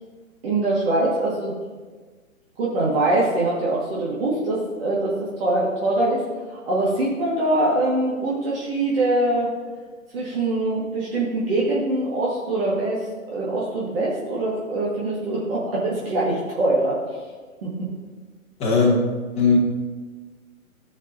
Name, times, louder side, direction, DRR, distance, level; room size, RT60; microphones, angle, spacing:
voice 1, 0.4-1.5 2.6-9.5 10.1-13.1 13.3-17.0 17.6-17.7, right 2 dB, 40° right, -6 dB, 1.9 m, -23 dB
voice 2, 18.6-19.0 19.3-19.6, left 4 dB, 15° left, -3 dB, 1.5 m, -17 dB
14.5 x 5.2 x 2.8 m, 1.4 s
figure-of-eight pair, 130°, 42 cm